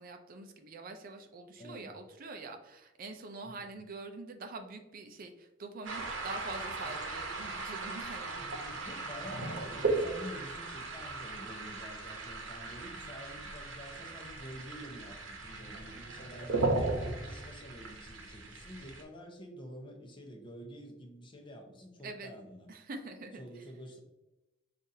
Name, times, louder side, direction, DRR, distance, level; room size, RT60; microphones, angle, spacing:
voice 1, 0.0-8.8 22.0-22.3 22.7-23.7, right 3 dB, 50° right, 6 dB, 0.4 m, -45 dB
voice 2, 1.6-1.9 3.4-3.7 8.4-22.7 23.4-24.0, equal, 25° left, 1 dB, 0.7 m, -48 dB
sound 1, 5.8-19.0, right 3 dB, 75° right, 0.8 m, -37 dB
5.5 x 2.5 x 2.7 m, 0.99 s
head